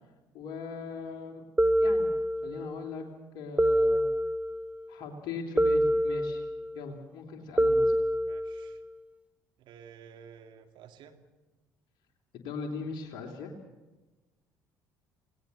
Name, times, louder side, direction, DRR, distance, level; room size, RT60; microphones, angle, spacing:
voice 1, 0.3-1.4 1.8-2.1 2.4-3.1 3.3-4.0 4.9-6.5 6.7-7.9 12.3-13.5, left 4 dB, 55° left, 1 dB, 3.4 m, -39 dB
sound 1, 1.6-2.7 3.6-4.8 5.6-6.7 7.6-8.8, equal, 15° right, 1.0 m, -26 dB
voice 2, 8.3-8.8 9.6-11.2, right 7 dB, 55° right, 6 dB, 2.8 m, -52 dB
29.5 x 18.0 x 6.8 m, 1.2 s
figure-of-eight pair, 50°, 10 cm